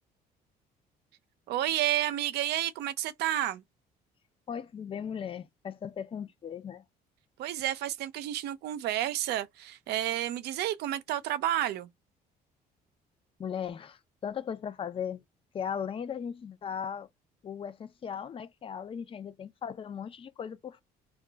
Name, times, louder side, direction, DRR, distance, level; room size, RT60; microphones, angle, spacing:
voice 1, 1.5-3.6 7.4-11.9, right 13 dB, 75° right, 0.5 m, -30 dB
voice 2, 4.5-6.8 13.4-15.2 15.5-17.1 17.4-20.8, left 8 dB, 30° left, 0.5 m, -37 dB
2.3 x 2.2 x 3.8 m
cardioid pair, 110°, 17 cm